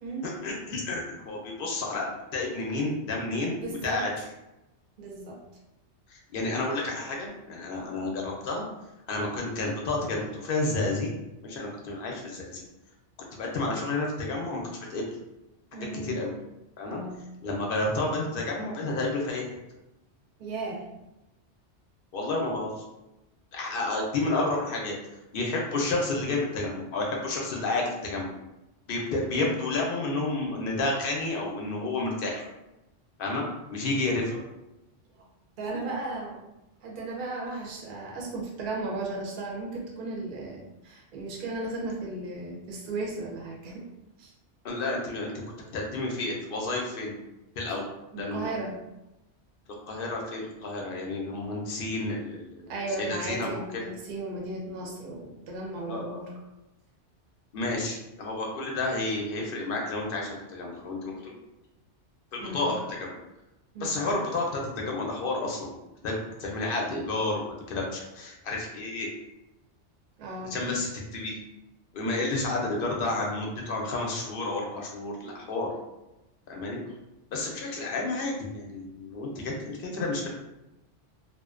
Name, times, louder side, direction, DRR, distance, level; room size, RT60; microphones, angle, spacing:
voice 1, 0.2-4.1 6.1-8.6 9.1-11.1 11.4-12.6 13.3-15.2 16.0-16.3 16.8-17.0 17.4-19.6 22.1-22.8 23.5-24.9 25.3-28.3 28.9-32.5 33.2-33.4 33.7-34.3 44.6-47.1 47.5-48.5 49.9-53.8 55.9-56.2 57.5-61.3 62.3-63.1 63.8-65.7 66.0-69.1 70.5-71.4 71.9-75.7 76.5-76.8 77.3-80.3, left 2 dB, 60° left, -1 dB, 0.6 m, -31 dB
voice 2, 3.5-4.1 5.0-5.4 15.7-16.2 16.8-17.2 20.4-20.8 34.2-34.4 35.6-36.4 36.8-43.8 44.2-44.3 48.1-48.8 52.7-56.3 62.4-62.7 63.7-64.0 70.2-70.6, right 2 dB, 55° right, -2 dB, 0.7 m, -35 dB
2.5 x 2.1 x 2.4 m, 0.96 s
omnidirectional pair, 1.2 m